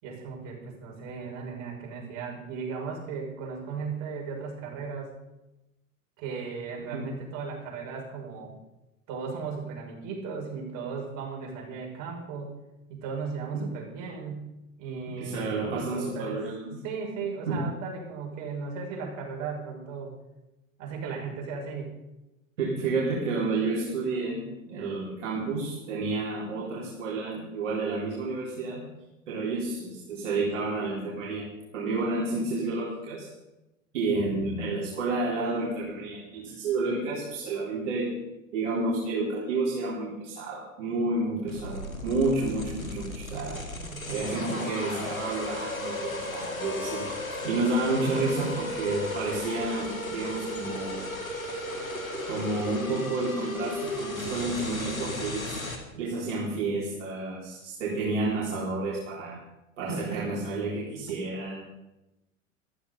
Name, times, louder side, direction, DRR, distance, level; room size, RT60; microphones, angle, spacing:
voice 1, 0.0-5.1 6.2-8.5 9.1-12.5 12.9-14.5 14.8-16.4 16.8-20.1 20.8-22.0 43.6-44.4 59.8-60.2 60.9-61.2, right 5 dB, 45° right, -1 dB, 5.9 m, -36 dB
voice 2, 15.2-16.7 17.5-17.6 22.6-24.4 24.7-28.8 29.3-31.5 31.7-33.3 33.9-38.1 38.5-43.6 44.1-51.0 52.2-55.6 55.9-59.4 59.8-61.5, right 3 dB, 60° right, -5 dB, 3.9 m, -30 dB
sound 1, 41.5-55.8, left 1 dB, 85° left, 2.3 m, -35 dB
14.0 x 13.5 x 5.4 m, 0.96 s
figure-of-eight pair, 80°, 40 cm